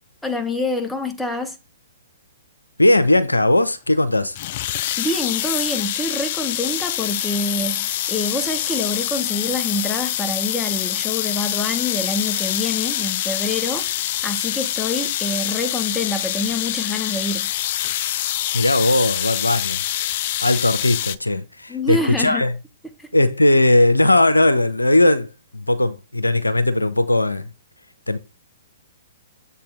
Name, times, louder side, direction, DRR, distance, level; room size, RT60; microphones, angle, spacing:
voice 1, 0.2-1.6 5.0-17.5 21.7-22.4 23.0-23.1, left 2 dB, 5° left, 0.9 m, -26 dB
voice 2, 2.8-4.4 18.5-19.8 20.4-22.5 23.1-27.5 28.1-28.2, left 1 dB, 90° left, 0.7 m, -18 dB
sound 1, 4.4-21.2, left 13 dB, 45° left, 0.4 m, -25 dB
7.3 x 4.1 x 3.8 m
figure-of-eight pair, 120°, 0 cm